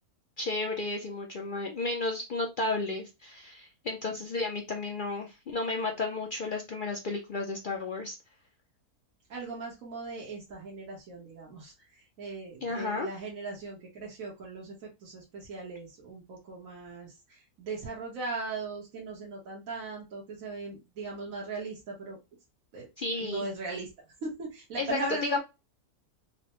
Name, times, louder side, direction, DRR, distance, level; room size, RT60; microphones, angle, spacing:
voice 1, 0.4-8.2 12.6-13.1 23.0-23.5 24.8-25.0 25.3-25.4, left 3 dB, 85° left, 1 dB, 0.4 m, -33 dB
voice 2, 9.3-22.2 22.7-22.9 23.2-23.9 24.2-25.4, right 3 dB, 65° right, -4 dB, 1.4 m, -39 dB
4.4 x 2.0 x 2.9 m, 0.25 s
omnidirectional pair, 1.6 m